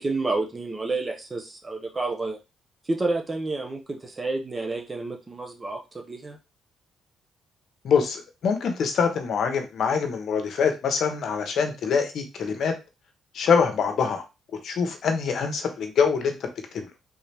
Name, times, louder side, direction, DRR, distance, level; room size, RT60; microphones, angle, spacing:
voice 1, 0.0-2.4 2.9-6.4, right 3 dB, 25° right, 2 dB, 0.6 m, -29 dB
voice 2, 7.8-12.7 13.3-14.2 14.6-16.3 16.7-16.9, left 6 dB, 65° left, 5 dB, 0.9 m, -24 dB
3.5 x 2.8 x 3.3 m, 0.27 s
cardioid pair, 90°, 0 cm